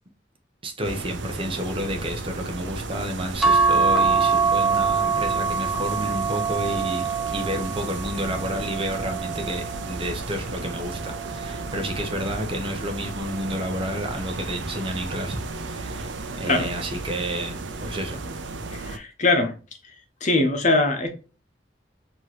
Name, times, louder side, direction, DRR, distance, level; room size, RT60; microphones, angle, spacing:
voice 1, 0.6-18.2, equal, 30° right, 0.9 m, -31 dB
sound 1, 0.8-19.0, right 3 dB, 80° right, 0.6 m, -34 dB
sound 2, 3.4-10.0 10.7-12.1 13.3-13.7 14.1-14.2, right 5 dB, ahead, 0.6 m, -25 dB
voice 2, 18.7-19.5 20.2-21.1, left 2 dB, 45° left, 1.0 m, -22 dB
4.6 x 3.0 x 3.0 m
head